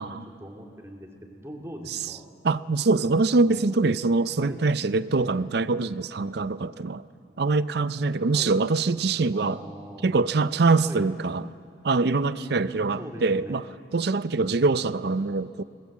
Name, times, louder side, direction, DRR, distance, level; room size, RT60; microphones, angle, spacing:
voice 1, 0.0-2.3 3.0-3.2 3.5-3.6 4.4-4.6 8.3-8.6 9.3-10.2 10.8-11.1 12.2-13.6 14.4-14.7, equal, 15° right, 0 dB, 2.5 m, -41 dB
voice 2, 2.4-7.1 7.4-9.6 10.0-11.5 11.8-13.6 13.9-15.6, right 3 dB, 60° right, 15 dB, 0.5 m, -24 dB
24.5 x 20.5 x 7.4 m, 2.4 s
head